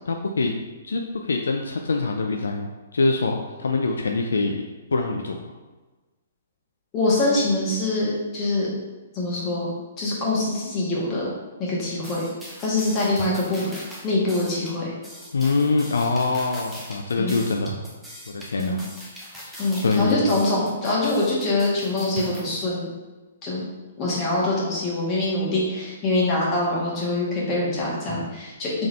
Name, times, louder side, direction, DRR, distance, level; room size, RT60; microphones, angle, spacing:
voice 1, 0.1-0.5 0.8-4.6 4.9-5.5 15.3-17.8 18.3-18.8 19.4-20.3, left 3 dB, 75° left, 3 dB, 0.4 m, -24 dB
voice 2, 6.9-8.7 9.1-11.3 11.6-12.2 12.6-13.7 14.0-14.9 17.2-17.3 18.6-18.8 19.6-22.9 23.4-23.6 24.0-28.7, left 2 dB, 30° left, -5 dB, 1.5 m, -24 dB
sound 1, 12.0-22.4, equal, ahead, 0.9 m, -40 dB
3.6 x 3.5 x 3.3 m, 1.2 s
figure-of-eight pair, 125°, 0 cm